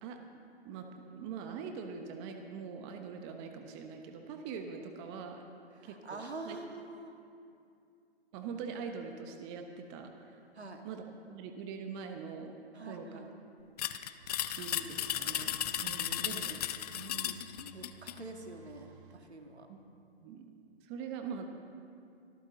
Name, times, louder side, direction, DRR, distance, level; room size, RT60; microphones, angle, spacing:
voice 1, 0.0-5.4 5.8-6.6 8.3-10.4 10.8-12.6 12.9-13.3 14.4-16.6 19.7-19.8 20.2-20.5 20.8-21.5, right 6 dB, 25° right, 4 dB, 1.1 m, -43 dB
voice 2, 5.8-7.2 10.5-10.8 12.7-13.3 16.9-19.7, right 2 dB, 85° right, 4 dB, 2.0 m, -46 dB
sound 1, 13.8-18.2, left 11 dB, 40° left, 0.6 m, -35 dB
sound 2, 14.2-19.2, right 9 dB, 50° right, 1.7 m, -57 dB
24.5 x 13.5 x 3.9 m, 2.5 s
figure-of-eight pair, 130°, 32 cm